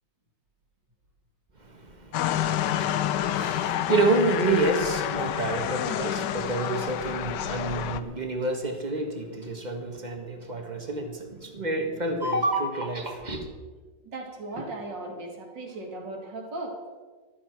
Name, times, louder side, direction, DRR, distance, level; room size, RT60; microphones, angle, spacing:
voice 1, 1.6-13.4, right 2 dB, 25° right, 4 dB, 1.6 m, -29 dB
sound 1, 2.1-8.0, left 11 dB, 75° left, 1.3 m, -28 dB
voice 2, 14.0-16.8, right 2 dB, 70° right, 1 dB, 2.9 m, -37 dB
14.0 x 13.0 x 4.6 m, 1.4 s
omnidirectional pair, 2.0 m